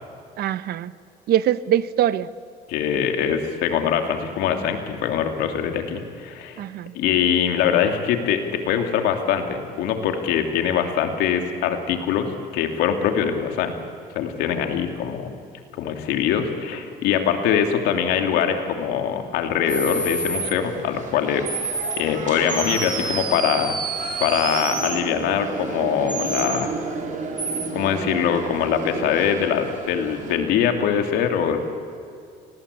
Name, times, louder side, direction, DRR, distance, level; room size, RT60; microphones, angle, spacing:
voice 1, 0.4-0.9 1.3-2.3 6.6-6.9, right 11 dB, 70° right, 15 dB, 0.9 m, -22 dB
voice 2, 2.7-6.6 6.9-12.3 12.5-13.7 14.1-15.3 15.8-21.5 22.0-23.8 24.2-26.7 27.7-31.6, left 8 dB, 85° left, 5 dB, 2.9 m, -23 dB
sound 1, 19.6-30.4, right 4 dB, 50° right, 4.8 m, -33 dB
sound 2, 19.7-20.5 21.5-22.0 22.5-25.0 26.1-26.7 27.4-27.7, right 3 dB, 25° right, 2.4 m, -28 dB
28.5 x 19.5 x 8.5 m, 2.4 s
cardioid pair, 110°, 17 cm